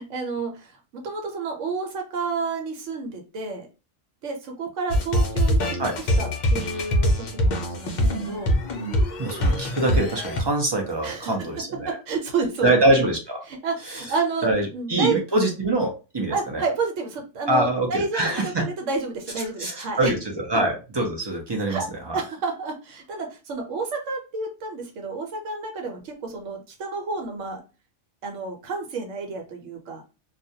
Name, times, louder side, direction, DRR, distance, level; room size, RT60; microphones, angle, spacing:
voice 1, 0.0-3.7 4.2-8.5 11.0-12.8 13.4-15.2 16.3-20.1 20.5-20.6 21.7-21.9 22.1-27.6 28.2-30.0, right 4 dB, 85° right, 3 dB, 1.0 m, -30 dB
sound 1, 4.9-10.4, equal, 55° left, 0.5 m, -23 dB
voice 2, 9.2-12.0 12.6-13.4 13.9-14.0 14.4-16.6 17.5-18.6 19.6-22.2, right 2 dB, 40° right, 0 dB, 0.3 m, -24 dB
2.3 x 2.1 x 2.7 m, 0.31 s
omnidirectional pair, 1.2 m